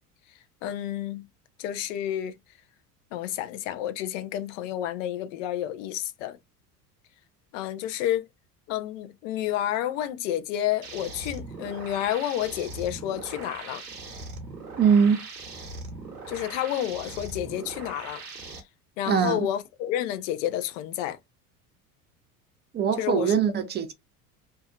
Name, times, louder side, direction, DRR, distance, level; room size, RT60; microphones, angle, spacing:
voice 1, 0.6-1.2 1.6-2.4 3.1-6.4 7.5-8.3 8.7-13.8 16.3-18.2 19.0-21.2 23.0-23.3, left 12 dB, 55° left, 0.6 m, -30 dB
sound 1, 10.8-18.6, right 3 dB, 85° right, 0.9 m, -40 dB
voice 2, 14.8-15.2 19.1-19.5 22.7-23.9, right 7 dB, 25° right, 0.6 m, -22 dB
2.7 x 2.2 x 2.2 m
figure-of-eight pair, 70°, 45 cm